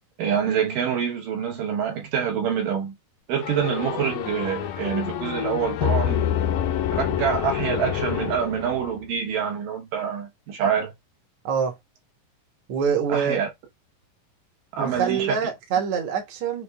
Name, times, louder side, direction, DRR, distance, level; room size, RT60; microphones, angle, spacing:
voice 1, 0.2-3.0 3.3-6.2 6.9-10.9 13.1-13.5 14.7-15.4, right 8 dB, 80° right, 2.9 m, -26 dB
sound 1, 3.4-9.0, left 10 dB, 85° left, 2.3 m, -27 dB
voice 2, 11.4-11.8 12.7-13.4 14.8-16.6, right 7 dB, 65° right, 2.3 m, -25 dB
6.2 x 2.5 x 3.4 m
omnidirectional pair, 3.9 m